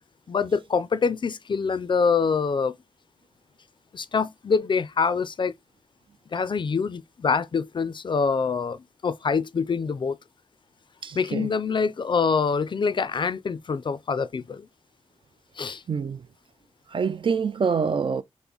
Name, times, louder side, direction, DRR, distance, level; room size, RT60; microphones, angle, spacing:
voice 1, 0.3-2.8 3.9-5.5 6.3-10.2 11.1-14.7 15.6-15.8, left 5 dB, 50° left, 0.4 m, -25 dB
voice 2, 11.0-11.5 15.9-16.3 16.9-18.2, right 6 dB, 50° right, 0.3 m, -26 dB
5.8 x 2.0 x 3.8 m
wide cardioid pair, 130°, 11 cm